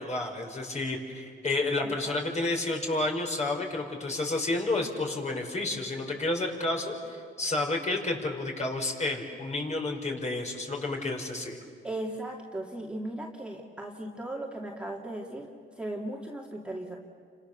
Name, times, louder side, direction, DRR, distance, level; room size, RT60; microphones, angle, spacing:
voice 1, 0.0-11.6, left 2 dB, 35° left, 1 dB, 5.3 m, -30 dB
voice 2, 1.8-2.1 11.8-17.0, right 1 dB, 5° right, -1 dB, 2.7 m, -37 dB
29.5 x 26.5 x 7.0 m, 2.2 s
cardioid pair, 90°, 20 cm